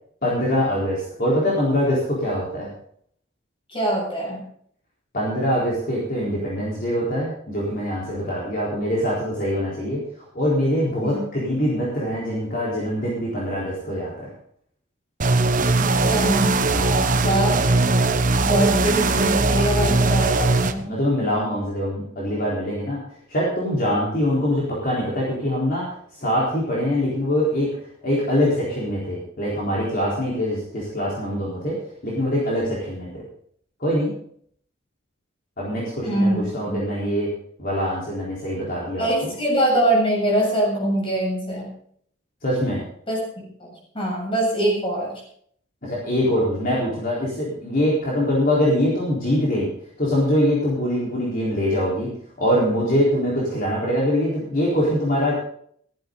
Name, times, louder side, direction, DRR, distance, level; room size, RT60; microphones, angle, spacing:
voice 1, 0.2-2.7 5.1-14.3 16.7-17.2 20.8-23.0 23.3-25.9 26.2-27.7 28.0-31.8 32.0-33.1 33.8-34.1 35.6-37.3 37.6-39.3 42.4-42.8 45.8-49.7 50.0-52.1 52.4-55.3, equal, 45° left, -5 dB, 4.1 m, -23 dB
voice 2, 3.7-4.4 11.0-11.2 15.8-16.5 17.2-17.6 18.4-20.9 36.0-36.8 39.0-41.7 43.1-43.7 43.9-45.1, right 1 dB, 25° left, -1 dB, 7.1 m, -23 dB
sound 1, 15.2-20.7, right 3 dB, 40° right, 1.0 m, -20 dB
16.0 x 14.0 x 3.9 m, 0.62 s
head